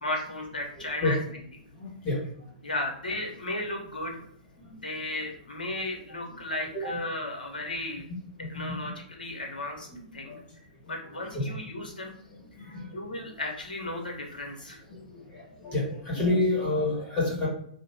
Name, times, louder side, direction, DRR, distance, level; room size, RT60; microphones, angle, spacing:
voice 1, 0.0-1.4 2.6-4.2 4.8-8.0 8.4-10.4 10.9-12.1 12.6-14.8, left 1 dB, 80° left, 1 dB, 0.9 m, -35 dB
voice 2, 1.8-2.2 6.3-6.4 6.8-6.9 8.4-8.9 9.9-10.0 10.3-10.4 11.3-11.5 12.7-12.8 14.9-15.0 15.6-17.5, left 2 dB, 25° left, -3 dB, 1.4 m, -28 dB
2.6 x 2.4 x 3.3 m, 0.65 s
figure-of-eight pair, 120°, 5 cm